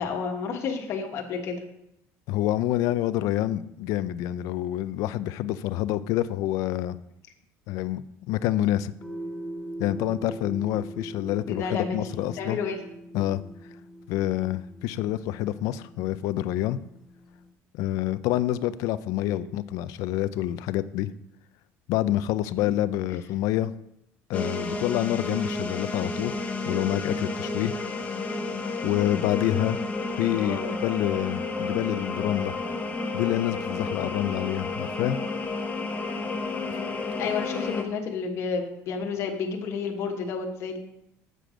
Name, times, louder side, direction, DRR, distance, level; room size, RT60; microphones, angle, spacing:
voice 1, 0.0-1.6 11.5-12.0 12.4-12.8 19.2-19.5 30.3-30.7 37.2-40.8, left 5 dB, 50° left, 1 dB, 1.4 m, -31 dB
voice 2, 2.3-7.0 7.7-8.9 9.8-12.6 13.1-13.4 14.1-16.8 17.7-21.1 21.9-23.7 24.3-26.4 26.7-27.7 28.8-29.8 30.2-32.5 33.1-35.2, left 13 dB, 70° left, 15 dB, 0.4 m, -27 dB
sound 1, 9.0-17.5, right 1 dB, ahead, 1.0 m, -42 dB
sound 2, 24.3-37.8, left 3 dB, 25° left, 0.9 m, -31 dB
7.6 x 6.6 x 5.0 m, 0.80 s
cardioid pair, 140°, 6 cm